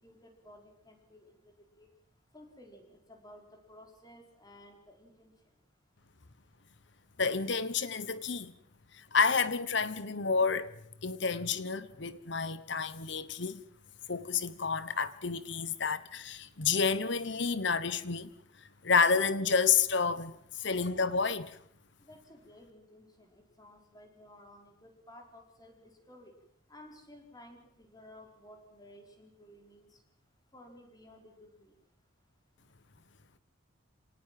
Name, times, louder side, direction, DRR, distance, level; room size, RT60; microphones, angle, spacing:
voice 1, 0.0-1.9 2.3-5.3 22.1-26.3 26.7-30.0 30.5-31.7, left 1 dB, 20° left, 4.6 m, -55 dB
voice 2, 7.2-8.5 8.9-10.7 11.0-13.6 14.1-18.3 18.8-21.6, left 5 dB, 55° left, 1.1 m, -30 dB
27.0 x 19.0 x 7.6 m
head